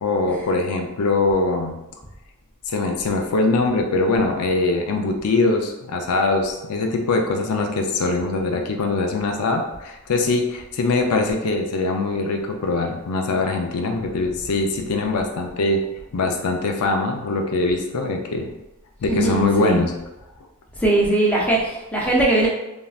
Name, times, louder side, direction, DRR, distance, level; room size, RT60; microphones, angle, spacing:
voice 1, 0.0-1.8 2.7-15.8 16.1-18.5 19.0-19.9, left 3 dB, 80° left, 3 dB, 0.5 m, -22 dB
voice 2, 19.1-19.8 20.8-22.5, right 2 dB, 5° left, -4 dB, 0.6 m, -20 dB
3.2 x 2.6 x 2.3 m, 0.93 s
head